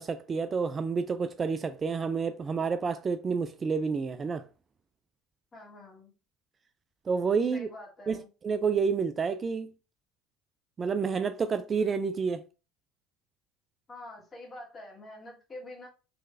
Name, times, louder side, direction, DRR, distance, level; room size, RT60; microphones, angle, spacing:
voice 1, 0.0-4.4 7.1-7.7 8.1-9.7 10.8-12.4, right 5 dB, 30° right, 0.3 m, -29 dB
voice 2, 5.5-6.1 7.5-8.3 13.9-15.9, left 2 dB, 25° left, 1.8 m, -46 dB
3.9 x 3.1 x 2.6 m
hypercardioid pair, 75°, 0 cm